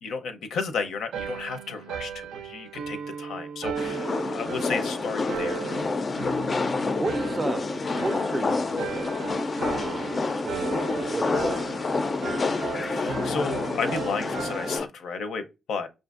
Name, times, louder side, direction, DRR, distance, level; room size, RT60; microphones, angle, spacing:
voice 1, 0.0-5.6 10.2-10.4 12.8-15.9, left 5 dB, 85° left, 0.6 m, -33 dB
sound 1, 1.1-14.8, right 7 dB, 90° right, 0.5 m, -36 dB
sound 2, 3.8-14.9, left 3 dB, 40° left, 0.4 m, -28 dB
voice 2, 6.7-9.4 9.8-12.4, right 2 dB, 25° right, 0.4 m, -34 dB
5.6 x 2.5 x 2.4 m
cardioid pair, 80°, 0 cm